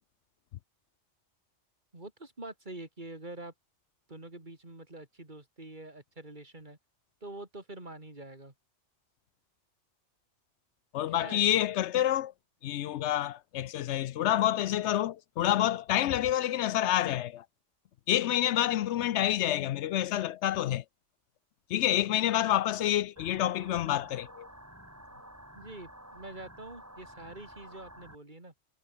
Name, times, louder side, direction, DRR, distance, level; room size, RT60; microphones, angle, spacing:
voice 1, 1.9-3.5 4.1-6.8 7.2-8.5 11.1-11.6 25.5-28.5, right 2 dB, 40° right, 4.1 m, -46 dB
voice 2, 10.9-12.3 12.6-17.4 18.1-20.8 21.7-24.5, left 12 dB, 70° left, 0.8 m, -28 dB
sound 1, 23.2-28.2, equal, 10° right, 4.6 m, -51 dB
omnidirectional pair, 1.3 m